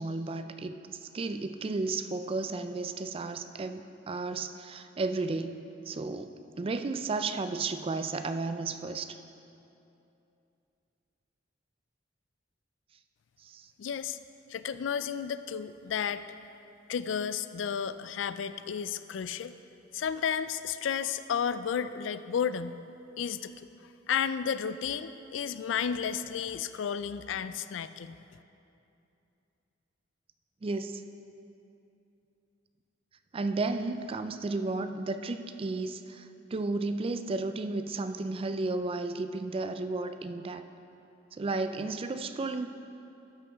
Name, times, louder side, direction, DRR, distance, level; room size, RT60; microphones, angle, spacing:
voice 1, 0.0-9.2 13.4-13.7 30.6-31.0 33.3-40.6 41.3-42.7, right 3 dB, 30° right, 9 dB, 0.4 m, -33 dB
voice 2, 13.8-14.2 14.5-16.2 16.9-19.5 19.9-22.8 23.2-23.5 24.1-28.2, left 7 dB, 75° left, 13 dB, 0.3 m, -32 dB
12.5 x 8.6 x 3.5 m, 2.8 s
head